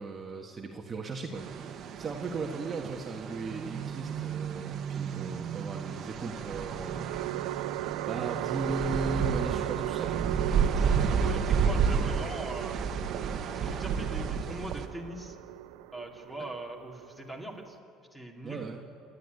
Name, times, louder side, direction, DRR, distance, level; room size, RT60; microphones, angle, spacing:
voice 1, 0.0-7.5 8.1-10.3 18.4-18.8, right 3 dB, 25° right, 1 dB, 1.5 m, -37 dB
sound 1, 1.3-14.9, right 6 dB, 45° right, 1.4 m, -31 dB
sound 2, 3.3-4.2 6.4-17.8, right 17 dB, 85° right, 0.5 m, -37 dB
voice 2, 10.7-12.8 13.5-15.4 15.9-17.8 18.1-18.7, right 1 dB, 5° left, 1 dB, 2.5 m, -42 dB
27.5 x 11.5 x 9.4 m, 2.5 s
cardioid pair, 135°, 0 cm